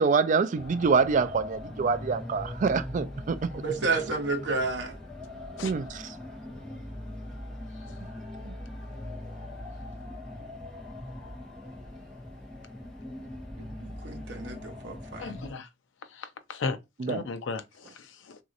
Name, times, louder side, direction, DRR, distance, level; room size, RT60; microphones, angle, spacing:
voice 1, 0.0-3.5 5.6-6.1 8.5-8.6 17.0-17.2, right 5 dB, 40° right, 0.3 m, -26 dB
sound 1, 0.5-15.5, left 1 dB, 5° left, 1.4 m, -41 dB
voice 2, 3.5-5.0 13.6-15.3, right 3 dB, 65° right, 0.9 m, -31 dB
voice 3, 15.2-15.7 16.1-16.8 17.0-18.4, left 4 dB, 85° left, 0.5 m, -36 dB
3.0 x 2.8 x 2.4 m
head